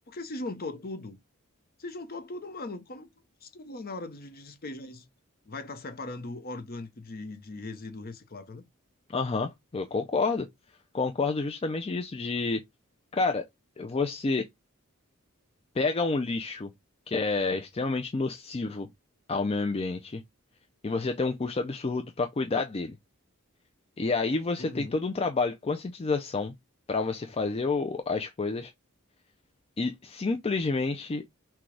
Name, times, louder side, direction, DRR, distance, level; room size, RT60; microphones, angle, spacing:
voice 1, 0.1-1.2 1.8-3.1 3.4-5.1 5.5-8.6 24.6-24.9, left 2 dB, 45° left, 0.8 m, -39 dB
voice 2, 9.1-10.5 10.9-12.6 13.1-13.5 13.8-14.5 15.8-16.7 17.1-18.9 19.3-20.2 20.8-22.9 24.0-26.5 26.9-28.7 29.8-31.4, left 3 dB, 30° left, 0.4 m, -29 dB
6.1 x 2.3 x 3.2 m
head